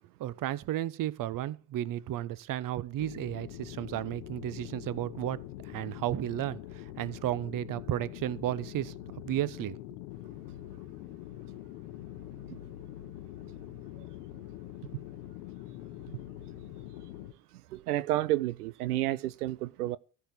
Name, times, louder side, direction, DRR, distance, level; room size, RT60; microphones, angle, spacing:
voice 1, 0.2-8.9 9.2-9.8, right 13 dB, 45° right, 0.9 m, -33 dB
sound 1, 3.0-17.3, left 14 dB, 70° left, 0.9 m, -44 dB
voice 2, 17.7-20.0, right 15 dB, 85° right, 0.6 m, -30 dB
14.0 x 4.8 x 8.3 m
hypercardioid pair, 70°, 45 cm